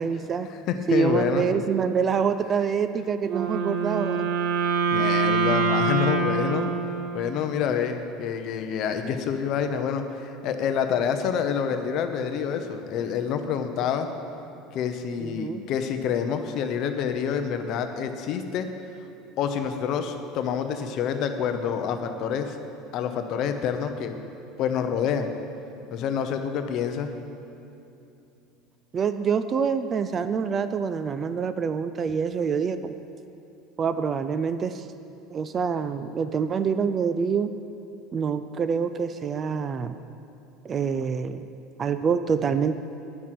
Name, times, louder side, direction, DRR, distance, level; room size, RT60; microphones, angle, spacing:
voice 1, 0.0-0.5 0.9-4.3 15.2-15.6 28.9-32.9 33.8-34.9 35.3-37.5 38.1-40.0 40.6-41.4 41.8-42.7, right 6 dB, 25° right, 11 dB, 0.3 m, -26 dB
voice 2, 0.7-1.4 4.9-6.7 7.1-14.1 14.7-18.7 19.4-22.6 22.9-24.1 24.6-25.3 25.9-27.1, left 7 dB, 45° left, 7 dB, 0.8 m, -27 dB
Wind instrument woodwind instrument, 3.2-7.5, right 4 dB, 70° right, 1.6 m, -25 dB
11.5 x 9.3 x 5.9 m, 2.8 s
cardioid pair, 165°, 0 cm